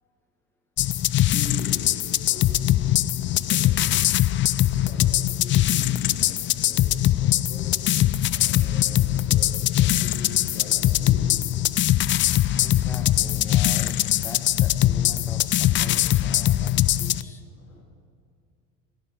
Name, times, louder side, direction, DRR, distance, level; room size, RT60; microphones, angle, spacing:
sound 1, 0.8-17.2, left 13 dB, 30° left, 0.4 m, -22 dB
voice 1, 1.0-4.1 4.6-7.8 8.3-11.4 17.5-17.8, left 1 dB, 90° left, -3 dB, 3.6 m, -43 dB
voice 2, 12.6-17.5 17.7-17.8, left 2 dB, 5° left, 5 dB, 1.3 m, -43 dB
18.5 x 8.5 x 8.4 m, 2.3 s
hypercardioid pair, 70°, 40 cm